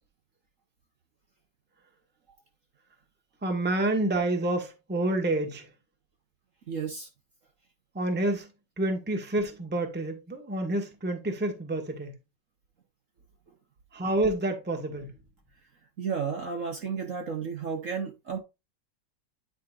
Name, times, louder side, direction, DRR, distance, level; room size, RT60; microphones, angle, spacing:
voice 1, 3.4-5.7 7.9-8.5 8.8-12.1 13.9-15.1, right 2 dB, 5° right, 1.1 m, -28 dB
voice 2, 6.7-7.1 16.0-18.4, right 6 dB, 50° right, 1.2 m, -32 dB
9.6 x 5.1 x 2.4 m
omnidirectional pair, 2.0 m